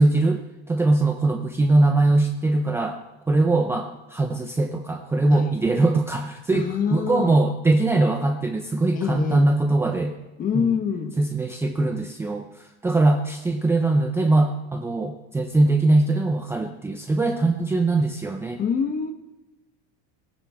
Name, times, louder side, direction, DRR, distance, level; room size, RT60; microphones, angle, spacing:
voice 1, 0.0-3.0 3.3-10.2 10.5-10.8 11.2-18.6, right 2 dB, 5° right, 4 dB, 0.6 m, -21 dB
voice 2, 6.5-7.3 8.9-9.4 10.4-11.1 18.6-19.1, left 6 dB, 25° left, 9 dB, 1.1 m, -25 dB
19.0 x 17.5 x 3.5 m, 1.0 s
cardioid pair, 165°, 33 cm